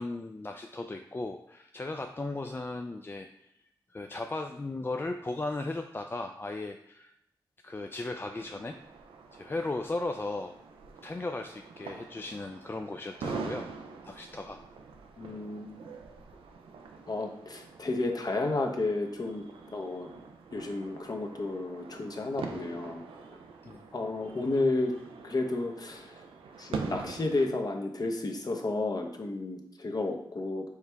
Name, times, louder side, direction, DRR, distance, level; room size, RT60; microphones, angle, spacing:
voice 1, 0.0-3.5 3.9-7.1 7.6-8.8 9.3-10.5 11.0-13.7 14.0-14.6 23.6-23.9, left 2 dB, 25° left, 5 dB, 0.3 m, -36 dB
sound 1, 8.3-27.5, right 5 dB, 90° right, 0.4 m, -44 dB
voice 2, 15.2-15.8 17.1-19.4 19.7-20.1 20.5-23.0 23.9-24.9 25.2-26.2 26.6-30.7, left 2 dB, 45° left, 3 dB, 0.8 m, -32 dB
4.7 x 3.4 x 3.3 m, 0.76 s
cardioid pair, 45°, 9 cm